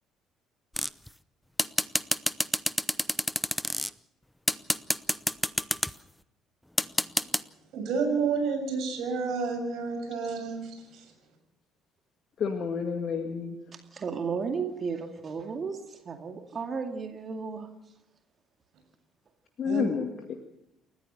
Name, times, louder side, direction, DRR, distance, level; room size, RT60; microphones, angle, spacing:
sound 1, 0.8-1.1 1.6-3.9 4.5-5.9 6.8-7.4, left 1 dB, 5° left, 0.8 m, -27 dB
voice 1, 7.7-11.1 19.6-19.8, right 5 dB, 55° right, 5 dB, 6.8 m, -30 dB
voice 2, 12.4-13.6 19.6-20.3, left 6 dB, 45° left, 5 dB, 2.0 m, -30 dB
voice 3, 13.9-17.7, right 5 dB, 40° right, 5 dB, 2.2 m, -34 dB
29.0 x 14.5 x 6.6 m, 0.86 s
figure-of-eight pair, 50°, 0 cm